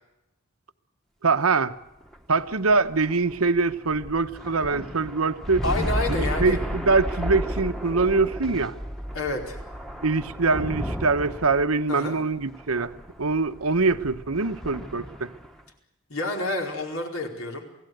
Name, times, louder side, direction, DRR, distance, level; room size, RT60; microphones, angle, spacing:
voice 1, 1.2-1.7 2.3-5.6 6.1-8.7 10.0-12.9 13.2-15.3, right 4 dB, 90° right, 1.1 m, -23 dB
sound 1, 2.0-15.6, equal, ahead, 1.3 m, -33 dB
voice 2, 5.6-6.6 9.1-9.6 11.9-12.2 16.1-17.7, left 2 dB, 80° left, 4.6 m, -29 dB
28.0 x 17.0 x 8.0 m
head